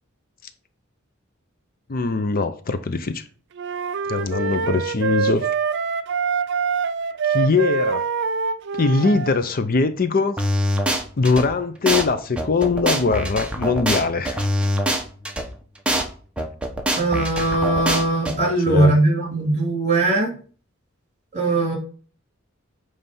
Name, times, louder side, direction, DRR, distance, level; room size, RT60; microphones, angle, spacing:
voice 1, 1.9-3.2 4.1-5.5 7.3-8.0 8.8-10.4 11.2-14.4 18.4-18.9, left 4 dB, 45° left, 0.6 m, -21 dB
Flute - F major - bad-articulation-staccato, 3.6-9.4, right 5 dB, 60° right, 0.5 m, -24 dB
sound 1, 10.4-11.4 11.9-12.0 12.4-15.4 15.9-16.0 16.4-18.3, equal, 5° right, 1.1 m, -23 dB
voice 2, 17.0-20.4 21.3-21.8, right 2 dB, 35° right, 3.2 m, -20 dB
9.5 x 3.4 x 5.4 m
head